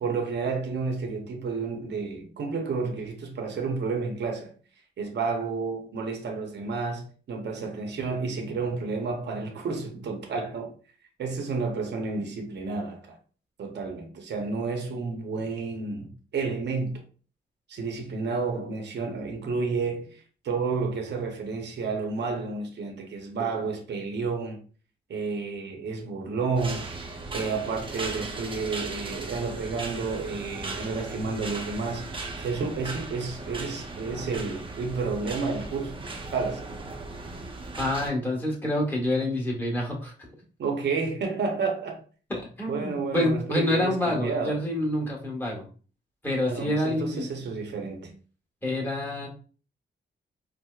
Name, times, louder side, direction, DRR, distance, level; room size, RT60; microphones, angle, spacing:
voice 1, 0.0-4.5 5.0-10.7 11.2-13.2 13.6-17.0 17.7-24.6 25.1-26.9 27.3-32.1 32.4-36.0 36.3-36.7 40.6-42.0 42.7-44.6 46.5-48.1, right 4 dB, 60° right, 0.7 m, -31 dB
sound 1, 26.6-38.1, right 3 dB, 25° right, 0.6 m, -37 dB
voice 2, 37.8-40.1 42.3-45.7 46.2-47.3 48.6-49.3, left 1 dB, 10° left, 1.3 m, -27 dB
4.5 x 2.0 x 2.3 m
cardioid pair, 95°, 20 cm